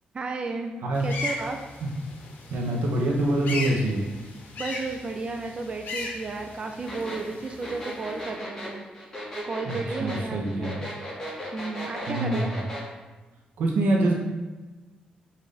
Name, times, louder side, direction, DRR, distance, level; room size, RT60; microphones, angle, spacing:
voice 1, 0.1-0.7 1.0-1.6 4.6-9.1 9.4-10.7 11.5-12.5, right 3 dB, 35° right, 4 dB, 0.4 m, -33 dB
sound 1, 0.9-8.2, left 3 dB, 75° left, 0.8 m, -37 dB
voice 2, 2.5-4.1 9.7-10.9 12.1-12.6 13.6-14.1, right 1 dB, 90° right, -1 dB, 0.7 m, -25 dB
sound 2, 6.9-12.9, equal, 20° left, 1.5 m, -36 dB
5.2 x 2.5 x 4.0 m, 1.2 s
cardioid pair, 100°, 3 cm